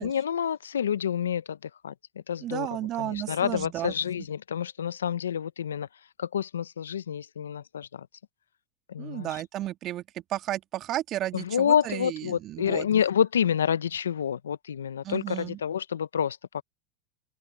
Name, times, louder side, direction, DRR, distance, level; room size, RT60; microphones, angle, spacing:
voice 1, 0.0-2.7 3.0-5.9 6.2-8.1 8.9-9.3 11.3-16.6, left 8 dB, 85° left, 1.0 m, -28 dB
voice 2, 2.4-3.9 9.0-12.9 15.0-15.6, right 13 dB, 45° right, 2.3 m, -33 dB
open air
hypercardioid pair, 85°, 0 cm